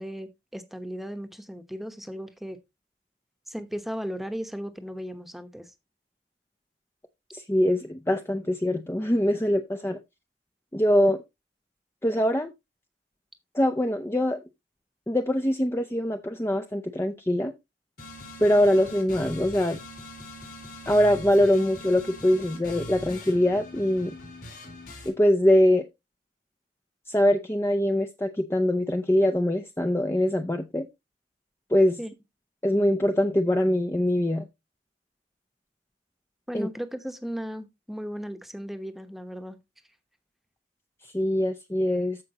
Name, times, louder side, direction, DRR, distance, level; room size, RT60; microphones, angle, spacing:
voice 1, 0.0-2.6 3.5-5.7 32.0-32.1 36.5-39.6, equal, ahead, 1.0 m, -36 dB
voice 2, 7.3-10.0 10.7-11.2 12.0-12.5 13.5-14.4 15.1-17.5 18.4-19.8 20.9-24.2 25.1-25.9 27.1-30.9 31.7-32.0 32.6-34.5 36.5-36.7 41.1-42.2, left 1 dB, 15° left, 0.6 m, -23 dB
sound 1, 18.0-25.1, left 1 dB, 60° left, 5.0 m, -42 dB
14.5 x 5.2 x 2.9 m
head